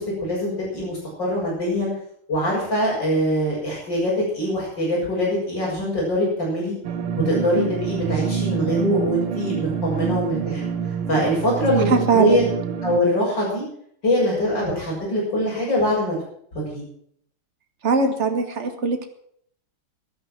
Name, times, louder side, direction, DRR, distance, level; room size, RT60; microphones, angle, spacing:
voice 1, 0.0-1.9 2.3-6.8 7.2-10.6 11.1-12.4 12.8-13.6 14.0-16.2 16.5-16.8, equal, 55° left, -8 dB, 7.2 m, -23 dB
sound 1, 6.8-13.0, right 7 dB, 90° right, 2.1 m, -26 dB
voice 2, 11.9-12.5 17.8-19.1, right 4 dB, 35° right, 6 dB, 1.8 m, -20 dB
15.5 x 11.0 x 6.0 m, 0.66 s
omnidirectional pair, 2.3 m